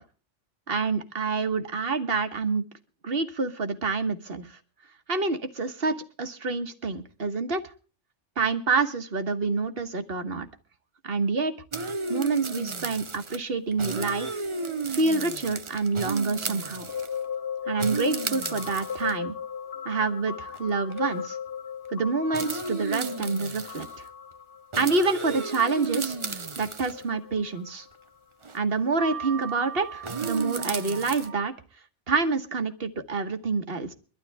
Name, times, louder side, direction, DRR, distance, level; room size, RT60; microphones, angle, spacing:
voice 1, 0.7-2.6 3.0-4.6 5.1-7.6 8.4-10.5 11.0-11.5 12.1-14.4 14.9-16.9 17.7-19.3 19.8-21.4 21.9-23.9 24.8-26.2 26.6-27.9 28.5-31.5 32.1-33.9, right 4 dB, 50° right, 8 dB, 1.7 m, -27 dB
sound 1, 11.7-13.4 13.7-17.2 17.8-19.1 19.9-20.0 20.5-20.6 20.9-21.2 22.3-24.0 24.7-27.0 28.4-28.6 30.0-31.3, right 4 dB, 30° right, 0.7 m, -33 dB
sound 2, 16.3-28.2 28.8-31.4, left 5 dB, 50° left, 1.5 m, -38 dB
22.5 x 12.5 x 3.5 m, 0.38 s
omnidirectional pair, 1.2 m